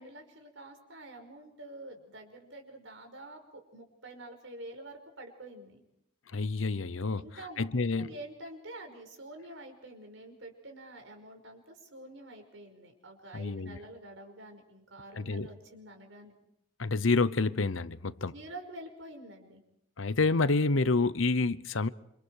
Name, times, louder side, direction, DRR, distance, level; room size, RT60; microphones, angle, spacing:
voice 1, 0.0-5.8 7.2-16.3 18.2-19.6, right 1 dB, 75° right, 5.4 m, -47 dB
voice 2, 6.3-7.2 7.6-8.1 13.3-13.8 15.2-15.5 16.8-18.3 20.0-21.9, left 3 dB, 80° left, 0.9 m, -28 dB
28.5 x 26.5 x 4.8 m
head